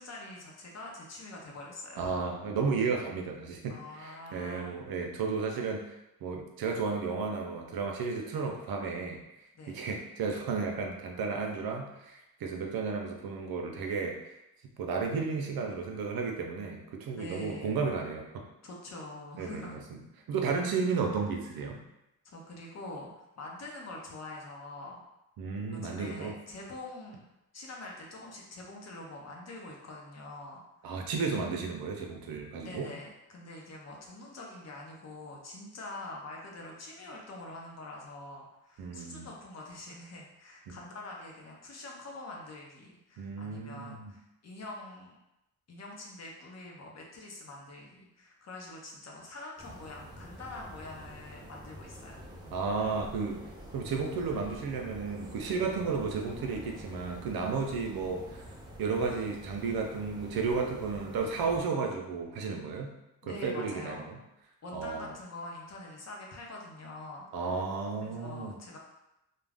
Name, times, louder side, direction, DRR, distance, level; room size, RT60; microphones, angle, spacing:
voice 1, 0.0-2.2 3.7-4.8 9.5-9.8 17.1-17.8 18.6-19.8 22.2-25.0 25.7-27.2 27.5-30.6 32.6-45.1 45.7-52.3 63.2-64.1 64.6-67.6 68.0-68.8, left 2 dB, 45° left, -1 dB, 0.7 m, -45 dB
voice 2, 2.0-5.8 6.2-9.2 9.7-14.2 14.8-18.4 19.4-19.7 20.3-21.8 25.4-26.3 30.8-32.9 38.8-39.3 40.7-40.8 43.2-44.1 52.5-53.4 53.7-58.4 58.8-62.9 63.2-64.2 64.7-65.1 67.3-68.6, right 4 dB, 70° right, 2 dB, 0.6 m, -33 dB
sound 1, 49.6-61.6, equal, 10° right, 0.6 m, -47 dB
2.4 x 2.1 x 3.3 m, 0.91 s
cardioid pair, 90°, 37 cm